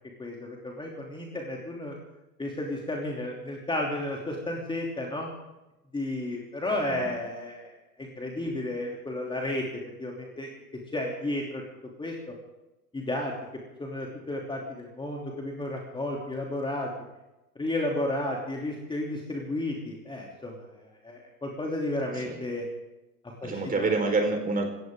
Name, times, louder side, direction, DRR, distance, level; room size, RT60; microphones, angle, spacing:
voice 1, 0.2-2.0 2.4-5.3 5.9-9.7 10.0-10.5 10.9-11.6 12.0-12.3 12.9-13.3 13.8-16.9 17.5-22.7 23.4-23.9, left 1 dB, 10° left, -1 dB, 3.0 m, -32 dB
voice 2, 23.4-24.6, right 3 dB, 15° right, 3 dB, 4.6 m, -27 dB
26.5 x 14.5 x 3.8 m, 0.99 s
figure-of-eight pair, 90°, 48 cm